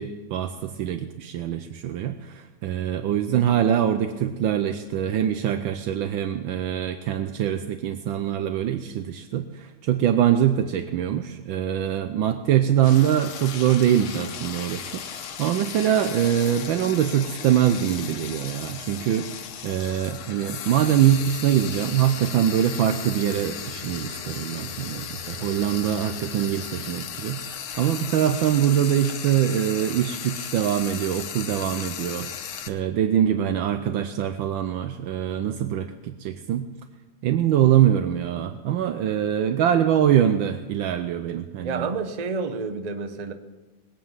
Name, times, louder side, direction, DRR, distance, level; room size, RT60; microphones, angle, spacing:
voice 1, 0.0-19.3 19.6-32.3 32.7-36.7 37.2-41.9, right 10 dB, 75° right, 8 dB, 1.4 m, -23 dB
Frying (food), 12.8-32.7, left 8 dB, 90° left, 1.9 m, -36 dB
sound 1, 21.1-26.9, left 3 dB, 20° left, 1.7 m, -44 dB
voice 2, 41.6-43.3, right 4 dB, 45° right, 8 dB, 0.5 m, -29 dB
20.0 x 8.7 x 7.3 m, 1.3 s
omnidirectional pair, 2.2 m